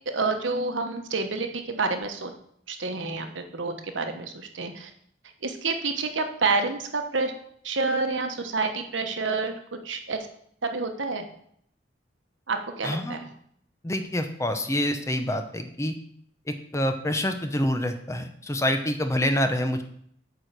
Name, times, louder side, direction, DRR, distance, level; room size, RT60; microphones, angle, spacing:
voice 1, 0.1-2.3 2.7-4.9 5.4-7.3 7.6-10.3 10.6-11.3 12.5-13.3, right 3 dB, 85° right, 6 dB, 1.1 m, -28 dB
voice 2, 12.8-13.2 13.8-16.0 16.5-19.8, left 1 dB, 15° left, 7 dB, 0.7 m, -27 dB
8.9 x 4.5 x 6.6 m, 0.66 s
head